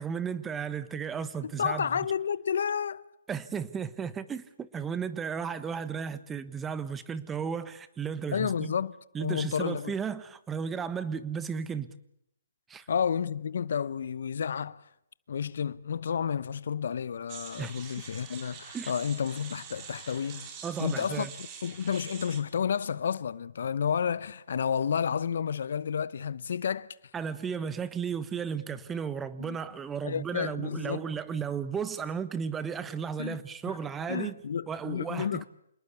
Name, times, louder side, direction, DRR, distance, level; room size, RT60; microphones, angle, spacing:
voice 1, 0.0-1.9 3.3-8.7 9.1-11.9 12.7-12.9 17.6-17.7 18.7-18.9 20.6-21.3 27.1-34.4 34.7-35.5, right 6 dB, 10° right, 1.3 m, -34 dB
voice 2, 1.6-3.0 8.3-8.9 9.2-9.9 12.9-14.8 15.3-20.5 20.8-26.9 29.4-29.6 30.0-31.1 33.2-33.4 34.1-35.5, left 7 dB, 65° left, 0.9 m, -31 dB
sound 1, 17.3-22.4, right 7 dB, 25° right, 4.4 m, -45 dB
28.0 x 19.5 x 8.5 m
hypercardioid pair, 150°, 0 cm